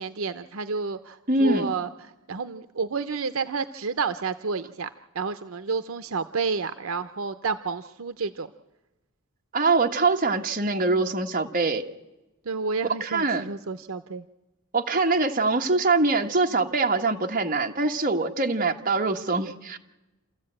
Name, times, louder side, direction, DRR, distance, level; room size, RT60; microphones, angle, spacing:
voice 1, 0.0-1.9 2.3-4.9 5.1-8.5 12.5-14.2, right 4 dB, 75° right, 11 dB, 0.7 m, -30 dB
voice 2, 1.3-1.7 9.5-11.8 13.0-13.4 14.7-19.8, right 3 dB, 40° right, 2 dB, 1.5 m, -23 dB
28.5 x 14.0 x 8.8 m, 1.0 s
head